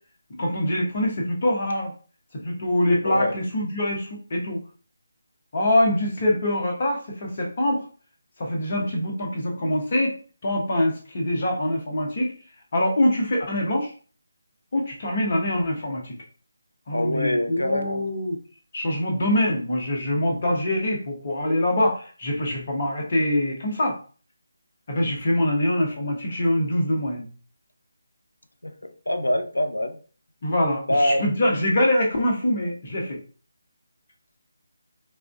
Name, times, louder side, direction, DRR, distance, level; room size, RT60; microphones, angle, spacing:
voice 1, 0.4-1.9 2.4-4.6 5.5-7.8 8.4-10.2 10.4-12.3 12.7-13.9 14.7-16.2 16.9-18.3 18.7-24.0 24.9-27.3 30.4-33.2, left 1 dB, 40° left, 0 dB, 1.0 m, -24 dB
voice 2, 3.0-3.3 16.9-18.0 28.6-28.8 29.1-30.0 30.9-31.3, left 1 dB, 75° left, 7 dB, 0.5 m, -24 dB
4.1 x 2.4 x 2.3 m, 0.39 s
figure-of-eight pair, 155°, 0 cm